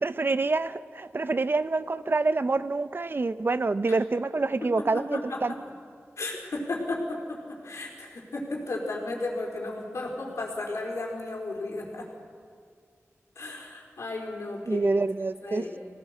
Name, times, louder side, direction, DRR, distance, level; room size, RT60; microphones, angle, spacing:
voice 1, 0.0-5.5 14.7-15.6, right 3 dB, 45° right, 13 dB, 0.6 m, -27 dB
voice 2, 4.6-5.6 6.2-12.1 13.4-15.0 15.4-15.8, left 2 dB, 80° left, -1 dB, 4.4 m, -34 dB
23.0 x 18.0 x 6.5 m, 2.1 s
wide cardioid pair, 80°, 5 cm